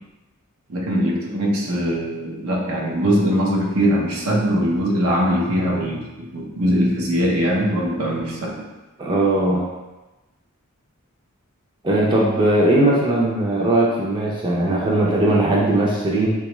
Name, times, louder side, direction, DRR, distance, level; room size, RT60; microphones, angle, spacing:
voice 1, 0.7-8.7, equal, 75° right, -1 dB, 0.7 m, -21 dB
voice 2, 9.0-9.7 11.8-16.3, right 1 dB, 20° right, -4 dB, 0.5 m, -19 dB
3.9 x 2.3 x 3.0 m, 1.1 s
head